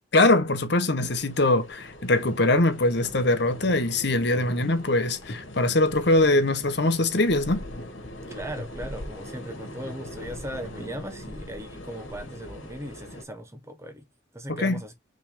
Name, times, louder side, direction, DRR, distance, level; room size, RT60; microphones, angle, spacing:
voice 1, 0.1-7.6 14.6-14.8, left 2 dB, 55° left, 1.0 m, -22 dB
sound 1, 1.0-13.2, left 1 dB, 85° left, 2.3 m, -41 dB
voice 2, 8.2-14.1 14.3-14.9, right 1 dB, 15° right, 1.0 m, -38 dB
5.8 x 3.5 x 5.0 m
head